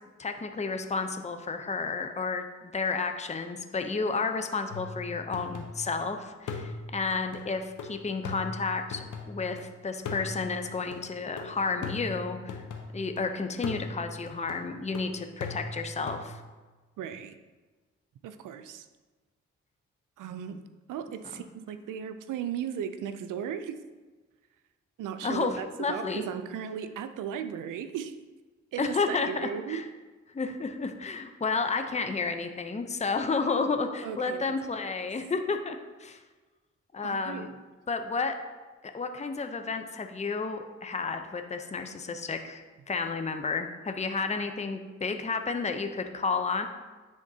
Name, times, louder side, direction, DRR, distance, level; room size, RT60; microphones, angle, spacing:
voice 1, 0.2-9.6 9.8-12.6 12.9-16.4 25.2-26.2 28.8-29.8 30.3-36.2 36.9-37.5 37.9-38.4 38.9-46.7, left 4 dB, 20° left, 7 dB, 0.6 m, -31 dB
sound 1, 4.7-6.0 6.5-9.6 10.0-13.2 13.6-16.3, left 4 dB, 75° left, 0.8 m, -40 dB
voice 2, 17.0-17.4 18.2-18.9 20.2-20.6 20.9-23.7 25.0-28.1 28.7-29.9 34.0-34.5 37.0-37.5, right 8 dB, 85° right, 10 dB, 0.5 m, -36 dB
10.5 x 3.6 x 2.7 m, 1.3 s
supercardioid pair, 45°, 30 cm